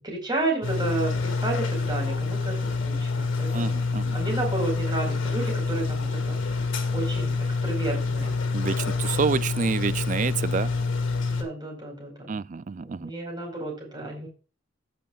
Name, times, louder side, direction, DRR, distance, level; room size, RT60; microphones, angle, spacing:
voice 1, 0.0-6.6 6.9-8.3 9.3-9.4 11.4-12.4 12.8-14.3, right 2 dB, 20° right, 4.6 m, -32 dB
sound 1, 0.6-11.4, left 4 dB, 75° left, 1.8 m, -27 dB
voice 2, 3.5-4.1 8.5-10.7 12.3-13.1, right 5 dB, 40° right, 0.4 m, -28 dB
15.5 x 7.1 x 2.4 m
head